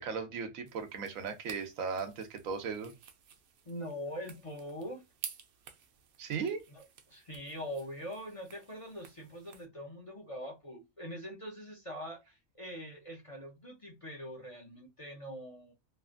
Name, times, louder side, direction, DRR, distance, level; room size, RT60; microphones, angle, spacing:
voice 1, 0.0-2.9 6.2-6.6, right 5 dB, 90° right, 1.1 m, -37 dB
sound 1, 0.7-9.7, right 7 dB, 65° right, 0.6 m, -52 dB
voice 2, 3.7-5.0 6.7-15.7, equal, 40° left, 0.5 m, -43 dB
3.1 x 2.4 x 2.4 m
omnidirectional pair, 1.4 m